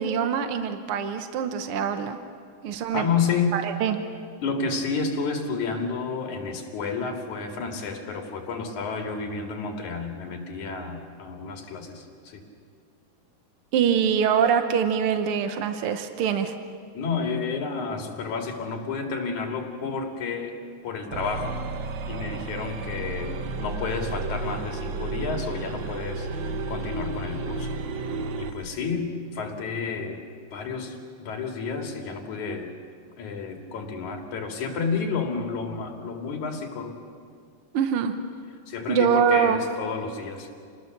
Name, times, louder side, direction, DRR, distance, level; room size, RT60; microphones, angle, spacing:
voice 1, 0.0-2.2 2.6-3.1 3.5-4.0 13.7-16.5 37.7-38.1 38.9-39.6, right 7 dB, 70° right, 7 dB, 1.3 m, -24 dB
voice 2, 2.9-3.6 4.4-12.4 16.9-20.6 20.8-21.6 22.1-27.8 28.4-30.2 30.5-32.7 33.2-37.0 38.7-40.5, left 5 dB, 65° left, 2 dB, 3.7 m, -30 dB
sound 1, 21.1-28.6, right 3 dB, 85° right, 1.0 m, -32 dB
28.5 x 19.5 x 6.6 m, 2.2 s
omnidirectional pair, 3.7 m